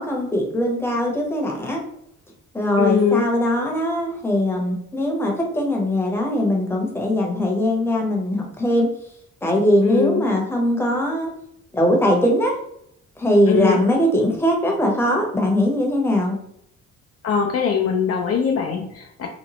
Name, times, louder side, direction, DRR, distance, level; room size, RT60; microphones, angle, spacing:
voice 1, 0.0-1.8 2.5-8.9 9.4-11.3 11.7-12.6 13.2-16.4, left 1 dB, 10° left, -1 dB, 0.8 m, -21 dB
voice 2, 2.8-3.3 9.8-10.3 13.5-13.8 17.2-19.3, left 6 dB, 50° left, 0 dB, 0.5 m, -21 dB
2.9 x 2.1 x 2.9 m, 0.70 s
cardioid pair, 90°, 30 cm